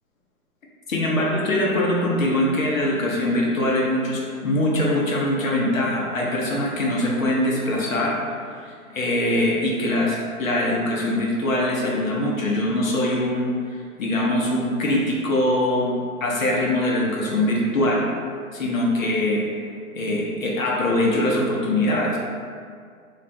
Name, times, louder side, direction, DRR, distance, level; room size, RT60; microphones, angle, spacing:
voice 1, 0.9-8.2 8.5-13.5 14.0-18.1 18.5-19.4 19.9-22.2, left 1 dB, 60° left, -3 dB, 0.7 m, -22 dB
4.2 x 2.4 x 2.2 m, 2.1 s
hypercardioid pair, 170°, 45 cm